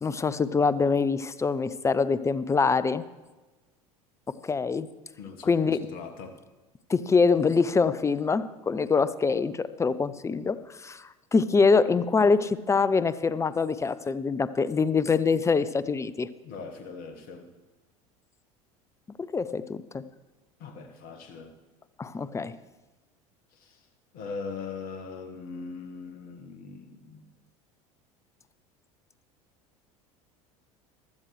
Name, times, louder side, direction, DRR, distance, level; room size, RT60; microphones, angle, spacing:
voice 1, 0.0-3.0 4.4-4.9 5.4-5.8 6.9-16.3 19.2-20.0 22.0-22.5, left 4 dB, 15° left, 15 dB, 0.5 m, -24 dB
voice 2, 5.2-6.4 16.4-17.5 20.6-21.5 23.6-23.8 24.1-27.3, left 5 dB, 55° left, 7 dB, 1.5 m, -40 dB
15.5 x 12.5 x 3.2 m, 1.2 s
hypercardioid pair, 75°, 18 cm